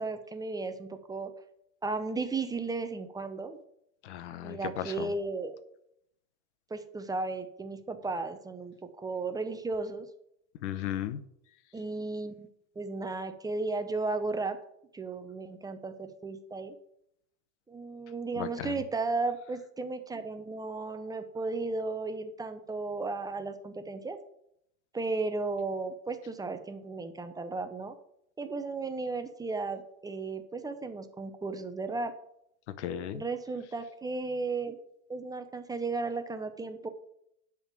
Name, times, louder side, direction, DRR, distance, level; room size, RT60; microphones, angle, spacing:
voice 1, 0.0-1.3 1.8-3.6 4.4-5.5 6.7-10.1 11.7-12.5 12.8-14.6 14.9-16.8 17.7-24.2 24.9-28.0 28.4-32.1 33.1-34.8 35.1-36.9, right 3 dB, 10° right, 8 dB, 0.6 m, -35 dB
voice 2, 4.0-5.1 10.6-11.2 18.4-18.7 32.8-33.2, left 11 dB, 80° left, 14 dB, 0.9 m, -35 dB
10.0 x 3.7 x 7.3 m, 0.75 s
supercardioid pair, 130°, 34 cm